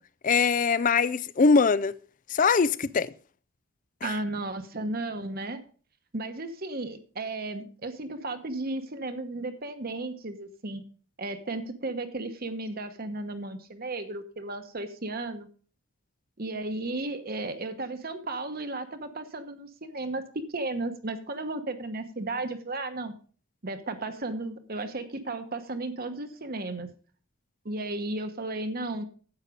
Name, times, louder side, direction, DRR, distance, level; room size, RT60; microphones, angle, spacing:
voice 1, 0.2-2.0 2.3-3.1 4.0-4.1, left 5 dB, 35° left, 0.4 m, -22 dB
voice 2, 4.0-5.6 6.1-10.8 11.2-15.5 16.4-20.2 20.5-23.1 23.6-26.9 27.6-29.0, right 2 dB, 45° right, 1.1 m, -34 dB
9.8 x 8.2 x 5.0 m
head